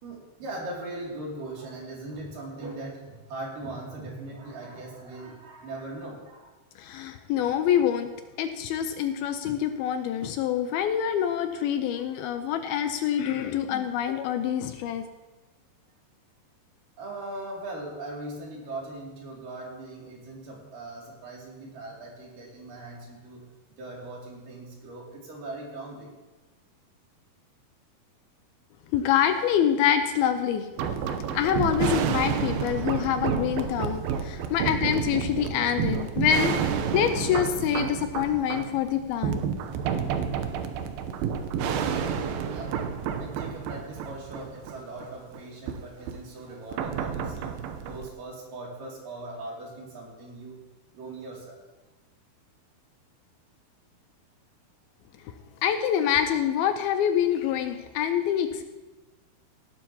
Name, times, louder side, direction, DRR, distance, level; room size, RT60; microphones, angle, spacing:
voice 1, 0.0-6.5 17.0-23.4 23.8-26.2 42.0-42.8 43.2-47.5 47.8-50.6 50.9-51.6, right 2 dB, 60° right, -3 dB, 4.1 m, -40 dB
voice 2, 6.8-8.1 8.4-15.1 28.9-30.7 31.3-36.6 36.9-39.4 55.6-58.6, left 9 dB, 85° left, 8 dB, 2.5 m, -26 dB
sound 1, 30.8-45.4 45.7-45.8 46.1-46.2 46.7-48.1, right 7 dB, 75° right, 2.5 m, -30 dB
18.0 x 11.5 x 2.9 m, 1.1 s
omnidirectional pair, 4.7 m